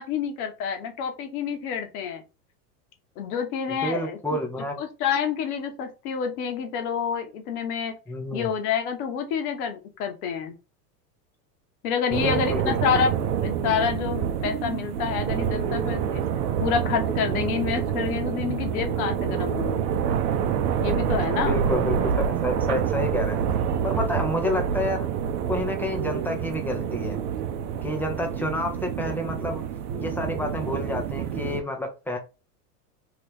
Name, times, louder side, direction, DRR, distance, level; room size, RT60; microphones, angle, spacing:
voice 1, 0.0-2.2 3.2-4.4 4.8-7.9 8.3-10.5 11.8-16.2 16.6-19.8 20.8-21.6, left 7 dB, 65° left, 1.1 m, -28 dB
voice 2, 3.7-4.8 8.1-8.5 12.1-13.1 21.4-23.5 23.8-25.1 25.5-27.2 27.8-29.6 30.0-32.2, left 1 dB, 5° left, 0.4 m, -29 dB
sound 1, 12.1-31.6, right 8 dB, 65° right, 0.7 m, -27 dB
3.0 x 2.4 x 3.3 m
hypercardioid pair, 105°, 48 cm